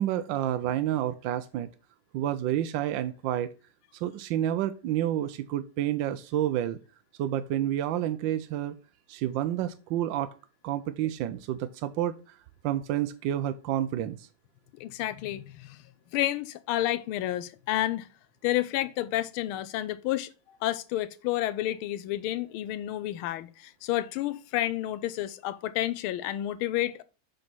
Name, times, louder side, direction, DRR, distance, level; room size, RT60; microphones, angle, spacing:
voice 1, 0.0-1.7 2.1-3.5 4.0-6.8 7.2-8.7 9.1-10.3 10.6-12.1 12.6-14.3, right 12 dB, 75° right, 1.2 m, -29 dB
voice 2, 14.8-15.8 16.1-18.1 18.4-20.3 20.6-27.0, left 14 dB, 80° left, 1.5 m, -30 dB
6.5 x 4.0 x 6.1 m
omnidirectional pair, 2.4 m